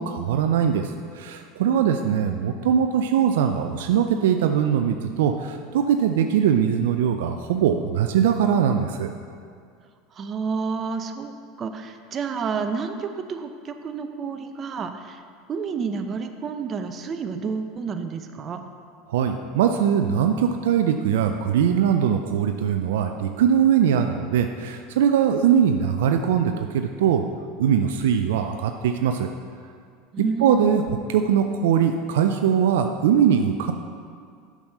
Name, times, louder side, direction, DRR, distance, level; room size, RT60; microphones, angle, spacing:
voice 1, 0.0-9.1 19.1-27.2 27.6-29.3 30.4-33.7, right 8 dB, 70° right, 6 dB, 0.4 m, -21 dB
voice 2, 2.0-2.5 10.1-11.3 11.6-15.2 15.5-18.6 30.1-31.0, right 5 dB, 35° right, 7 dB, 0.7 m, -30 dB
7.1 x 6.2 x 5.5 m, 2.1 s
hypercardioid pair, 80°, 0 cm